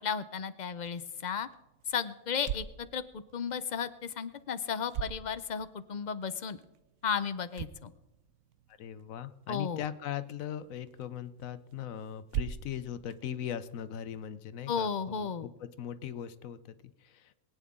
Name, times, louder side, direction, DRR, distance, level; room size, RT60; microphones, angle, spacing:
voice 1, 0.0-1.5 1.9-6.6 7.0-7.9 9.5-9.8 14.7-15.5, left 7 dB, 50° left, 13 dB, 0.5 m, -34 dB
sound 1, 0.7-14.3, right 10 dB, 80° right, 1.1 m, -45 dB
voice 2, 8.8-17.3, left 9 dB, 80° left, 13 dB, 1.1 m, -39 dB
22.0 x 9.1 x 3.6 m, 0.96 s
omnidirectional pair, 1.4 m